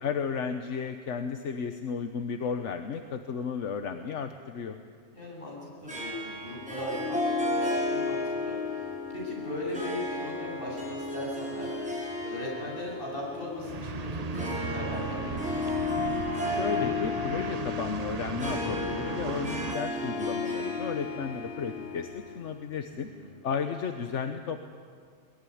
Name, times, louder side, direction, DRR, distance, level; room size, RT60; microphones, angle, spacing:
voice 1, 0.0-4.8 16.5-23.1 23.4-24.6, left 6 dB, 80° left, 7 dB, 1.3 m, -33 dB
voice 2, 5.1-11.7 12.2-15.6 22.9-23.4, left 1 dB, 50° left, -3 dB, 8.5 m, -38 dB
Harp, 5.9-22.6, left 3 dB, 5° right, 5.7 m, -33 dB
sound 1, 13.6-19.8, right 5 dB, 40° right, 0.8 m, -36 dB
22.0 x 21.0 x 10.0 m, 2.1 s
omnidirectional pair, 1.2 m